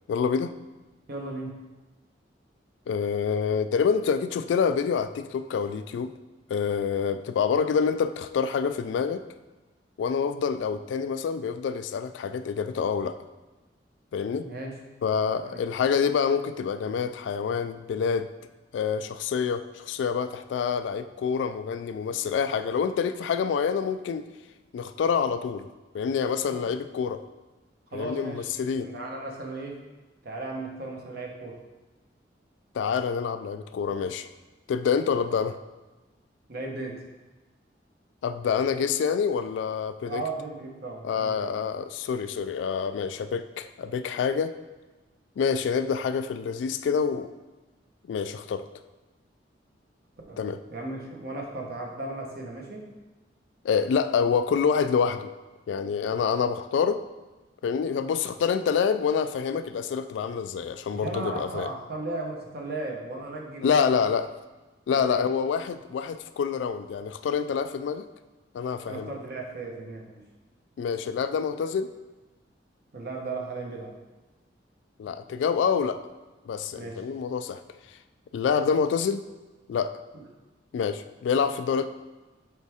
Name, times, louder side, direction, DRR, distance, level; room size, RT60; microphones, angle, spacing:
voice 1, 0.1-0.5 2.9-6.1 6.5-9.2 10.0-13.2 14.1-14.5 15.0-18.3 18.7-24.2 24.7-25.7 25.9-27.2 27.9-28.9 32.7-34.3 34.7-35.6 38.2-40.2 41.0-44.5 45.4-47.3 48.1-48.7 50.4-50.6 53.6-55.3 55.7-57.0 57.6-61.7 63.6-64.3 64.9-68.1 68.5-69.1 70.8-71.9 75.0-76.0 76.5-77.6 78.3-79.2 79.7-80.0 80.7-81.9, left 6 dB, 90° left, 12 dB, 0.3 m, -27 dB
voice 2, 1.1-1.6 14.4-14.7 15.4-15.6 26.4-26.7 27.9-29.8 30.2-31.6 36.5-37.0 40.0-41.6 50.3-50.4 50.7-52.9 60.9-64.1 64.9-65.2 68.9-70.2 72.9-73.9 76.7-77.0 80.1-80.2, right 2 dB, 60° right, 0 dB, 1.1 m, -36 dB
6.5 x 4.5 x 3.5 m, 1.2 s
head